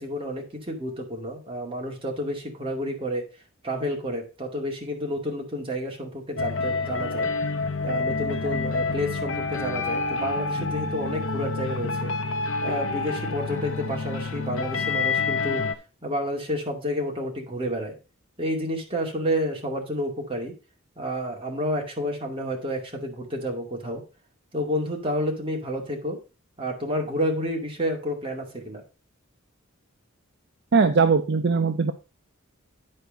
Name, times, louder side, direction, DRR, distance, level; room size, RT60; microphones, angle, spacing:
voice 1, 0.0-3.2 3.6-7.3 7.8-12.1 12.6-15.6 16.0-17.9 18.4-20.5 21.0-24.0 24.5-26.2 26.6-28.8, equal, 25° right, 0 dB, 2.2 m, -30 dB
sound 1, 6.4-15.7, left 4 dB, 65° left, 0.9 m, -28 dB
voice 2, 30.7-31.9, right 4 dB, 55° right, 8 dB, 0.6 m, -20 dB
9.8 x 4.6 x 5.2 m, 0.31 s
head